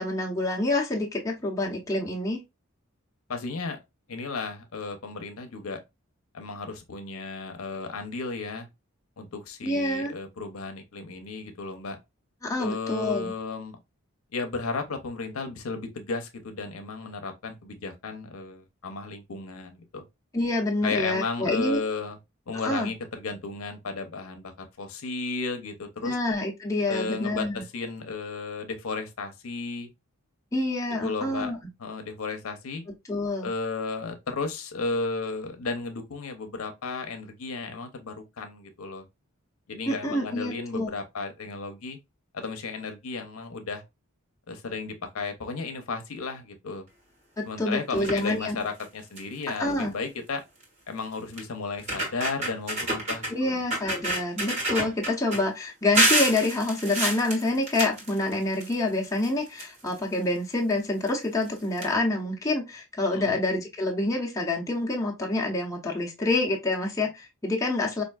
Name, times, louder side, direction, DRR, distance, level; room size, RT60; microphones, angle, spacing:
voice 1, 0.0-2.4 9.6-10.1 12.4-13.3 20.3-21.8 22.6-22.9 26.0-27.6 30.5-31.6 33.1-33.5 39.9-40.9 47.6-48.6 49.6-49.9 53.3-68.0, left 2 dB, 15° left, 0.7 m, -27 dB
voice 2, 3.3-3.8 4.1-5.8 6.3-8.7 9.2-12.0 12.6-13.7 14.3-20.0 20.8-22.2 22.5-24.5 24.8-26.2 26.9-29.9 31.0-31.5 31.8-32.8 33.4-39.0 39.7-42.0 42.3-43.8 44.5-46.8 47.5-50.4 50.9-53.6 63.1-63.4, left 4 dB, 75° left, 0.7 m, -34 dB
sound 1, 47.9-48.3 48.8-48.9 49.2-49.4 50.6-50.7 51.4-51.5 51.8-53.3 53.7-55.4 55.9-58.7 59.0-60.1 61.0-61.1 61.4-61.5 61.8-61.9, right 1 dB, 30° right, 1.2 m, -27 dB
4.4 x 2.5 x 2.3 m
head